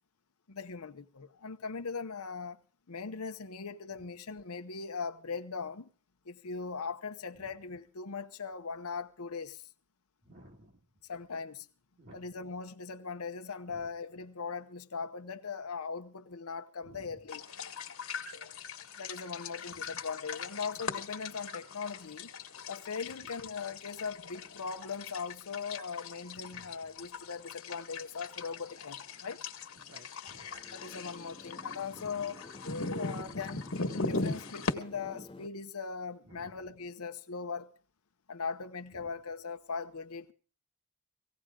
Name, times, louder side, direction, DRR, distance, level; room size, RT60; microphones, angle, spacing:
voice 1, 0.5-2.6 2.9-5.9 6.3-9.7 11.1-11.7 12.1-17.4 19.0-22.3 22.7-29.4 30.7-32.4 33.0-37.7 38.3-40.3, left 5 dB, 90° left, 0.9 m, -40 dB
voice 2, 10.2-10.8 12.0-12.3 13.7-13.9 16.8-17.3 19.7-20.0 23.0-23.5 26.3-26.9 29.7-30.7 33.2-33.6 36.2-36.8 38.9-39.1, right 1 dB, 55° right, 2.1 m, -57 dB
sound 1, 17.3-34.7, left 3 dB, 65° left, 1.6 m, -40 dB
sound 2, 30.4-35.5, left 2 dB, 25° left, 0.7 m, -51 dB
18.0 x 16.5 x 3.7 m
head